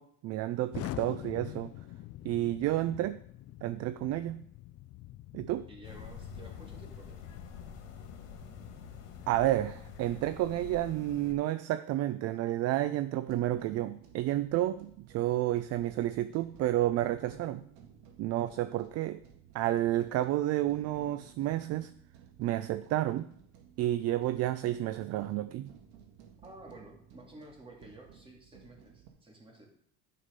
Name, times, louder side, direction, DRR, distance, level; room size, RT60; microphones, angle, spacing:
voice 1, 0.0-1.7 2.2-3.2 3.6-4.4 5.3-5.7 9.3-17.6 18.2-19.2 19.5-21.9 22.4-23.3 23.8-25.7, right 14 dB, 50° right, 0.4 m, -30 dB
Explosion, 0.7-10.6, left 15 dB, 45° left, 0.5 m, -46 dB
voice 2, 5.7-7.2 18.4-18.6 26.4-29.7, right 1 dB, 15° right, 2.6 m, -52 dB
sound 1, 5.8-11.3, left 6 dB, 70° left, 1.9 m, -47 dB
sound 2, 13.3-29.1, right 8 dB, 75° right, 1.8 m, -55 dB
10.0 x 5.8 x 5.2 m
supercardioid pair, 115°, 33 cm